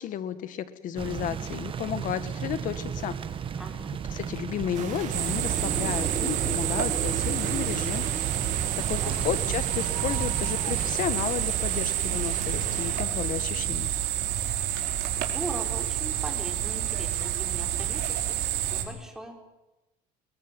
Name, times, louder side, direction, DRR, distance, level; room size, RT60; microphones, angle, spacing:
voice 1, 0.0-3.1 4.1-8.0 8.8-13.9, left 10 dB, 50° left, 13 dB, 1.7 m, -33 dB
sound 1, 1.0-11.1, right 7 dB, 30° right, 1.1 m, -35 dB
voice 2, 3.6-4.0 8.7-9.3 15.2-19.4, right 1 dB, 5° right, 2 dB, 4.4 m, -40 dB
sound 2, 4.7-13.0, right 10 dB, 45° right, 1.5 m, -39 dB
sound 3, 5.1-18.8, right 11 dB, 70° right, 4.8 m, -29 dB
22.0 x 21.5 x 9.1 m, 0.99 s
cardioid pair, 155°, 18 cm